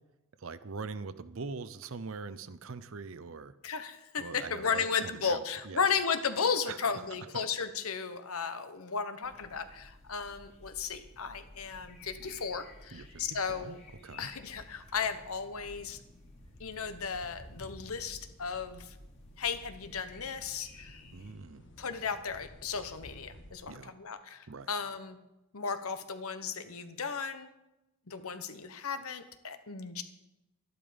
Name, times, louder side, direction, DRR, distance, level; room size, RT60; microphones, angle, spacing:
voice 1, 0.4-3.5 4.2-5.8 6.7-7.0 12.9-13.7 14.0-14.3 21.1-21.6 23.7-23.9 24.5-24.7, right 4 dB, 65° right, 14 dB, 0.6 m, -42 dB
voice 2, 3.6-13.8 14.2-16.0 16.6-18.9 19.4-20.9 21.8-25.2 25.5-27.5 28.1-30.0, left 6 dB, 75° left, 10 dB, 1.0 m, -35 dB
sound 1, 9.2-21.3, left 1 dB, 30° left, 2.6 m, -54 dB
sound 2, 14.3-23.5, left 1 dB, 55° left, 1.4 m, -55 dB
12.0 x 11.0 x 5.1 m, 0.97 s
head